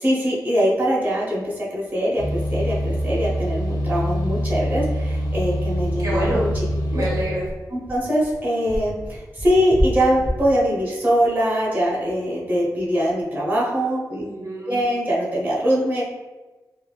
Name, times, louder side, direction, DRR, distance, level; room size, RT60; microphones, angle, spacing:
voice 1, 0.0-6.5 6.9-7.0 7.7-14.2 14.7-16.0, equal, 25° right, -6 dB, 0.8 m, -22 dB
sound 1, 1.9-2.0 2.3-2.4 2.7-2.8 3.2-3.3 3.8-12.2, equal, 15° left, 0.7 m, -31 dB
sound 2, 2.2-7.2, equal, 85° left, 0.6 m, -24 dB
voice 2, 6.0-7.5 14.2-14.9, right 1 dB, 60° right, -4 dB, 0.7 m, -27 dB
3.2 x 2.5 x 2.3 m, 1.2 s
wide cardioid pair, 145°, 7 cm